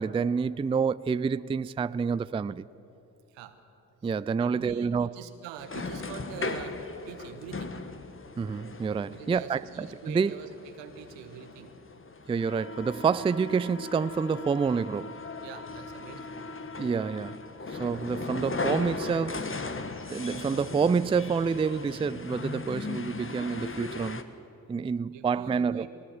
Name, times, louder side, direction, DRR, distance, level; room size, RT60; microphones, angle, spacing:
voice 1, 0.0-2.7 4.0-5.1 8.4-10.4 12.3-15.2 16.8-17.4 17.7-19.5 20.1-24.2 24.7-25.9, right 5 dB, 15° right, 0.4 m, -28 dB
voice 2, 4.0-7.8 9.1-11.7 15.4-16.6 25.1-25.9, right 9 dB, 80° right, 1.4 m, -45 dB
sound 1, 5.6-24.2, left 3 dB, 30° left, 1.5 m, -38 dB
20.5 x 20.0 x 7.2 m
hypercardioid pair, 45°, 43 cm